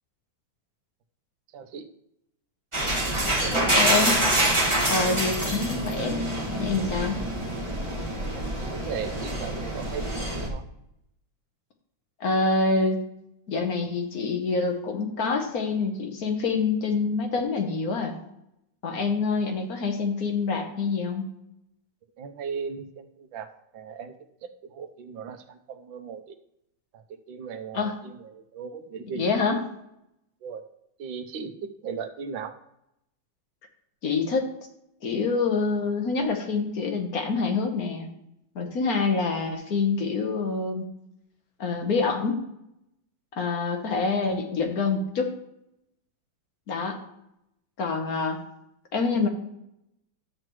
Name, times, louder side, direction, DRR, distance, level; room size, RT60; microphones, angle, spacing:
voice 1, 1.5-1.9 3.0-3.7 8.3-8.4 8.7-10.6 22.2-23.5 23.7-24.1 24.4-26.2 27.3-28.1 28.5-29.3 30.4-30.6 31.0-32.5, right 6 dB, 90° right, 7 dB, 1.5 m, -37 dB
sound 1, 2.7-10.5, right 1 dB, 15° right, 1.7 m, -26 dB
voice 2, 3.5-4.2 4.5-4.6 4.9-6.2 6.5-7.2 12.2-13.0 13.5-18.2 18.8-21.3 27.7-28.0 29.0-29.7 34.0-34.5 35.0-38.1 38.5-40.9 41.6-42.4 43.3-45.3 46.7-47.0 47.8-48.4 48.9-49.3, left 4 dB, 55° left, 4 dB, 1.4 m, -26 dB
11.5 x 7.6 x 3.0 m, 0.81 s
omnidirectional pair, 2.1 m